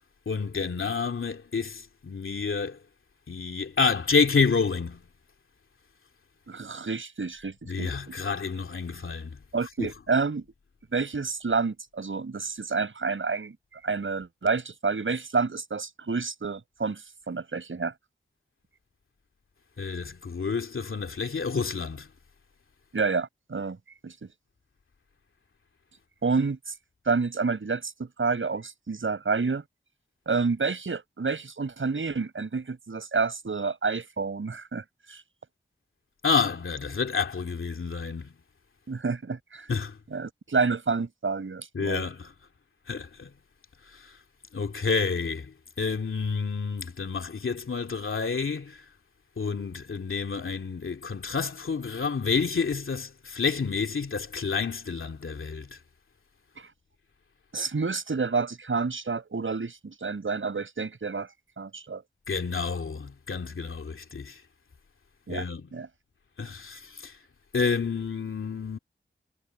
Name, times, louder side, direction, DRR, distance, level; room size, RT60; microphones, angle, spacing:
voice 1, 0.3-2.8 3.3-5.0 7.7-9.4 9.8-9.9 19.8-22.1 36.2-38.3 39.7-40.0 41.7-42.3 42.9-43.3 43.9-44.1 44.5-48.8 49.4-55.7 62.3-64.4 65.3-65.6 66.4-67.2 67.5-68.8, left 5 dB, 80° left, 2.6 m, -29 dB
voice 2, 6.5-8.2 9.5-10.4 10.9-13.6 13.8-17.0 17.3-17.9 22.9-23.8 24.0-24.3 26.2-26.6 27.1-29.6 30.3-35.2 38.9-39.7 40.1-42.0 56.6-56.7 57.5-61.3 61.6-62.0 65.3-65.9, right 4 dB, 75° right, 7.3 m, -29 dB
cardioid pair, 45°, 21 cm